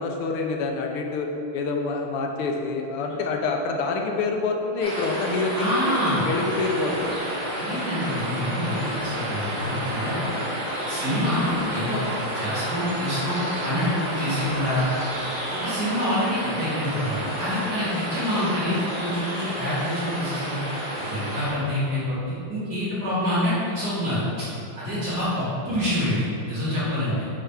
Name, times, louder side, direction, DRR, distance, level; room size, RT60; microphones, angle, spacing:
voice 1, 0.0-6.0 6.2-7.2 25.1-25.2 27.1-27.2, left 3 dB, 90° left, 2 dB, 1.6 m, -27 dB
sound 1, 4.8-21.5, right 1 dB, 30° right, 1.5 m, -30 dB
voice 2, 5.6-6.2 7.6-10.2 10.9-12.0 12.3-14.8 15.5-20.6 21.1-24.5 24.8-27.2, left 1 dB, 50° right, -10 dB, 2.2 m, -26 dB
7.3 x 3.7 x 4.5 m, 2.7 s
omnidirectional pair, 2.4 m